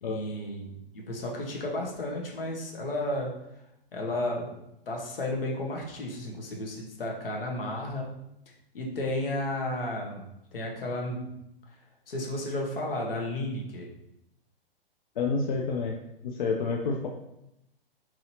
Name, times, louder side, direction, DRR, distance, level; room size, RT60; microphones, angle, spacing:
voice 1, 0.0-3.3 3.9-4.5 4.9-8.1 8.7-10.2 10.5-11.3 12.1-13.9, left 1 dB, 70° left, -1 dB, 1.2 m, -33 dB
voice 2, 15.2-16.0 16.2-17.1, left 4 dB, 55° left, 0 dB, 0.5 m, -28 dB
3.8 x 3.0 x 2.7 m, 0.85 s
figure-of-eight pair, 120°, 29 cm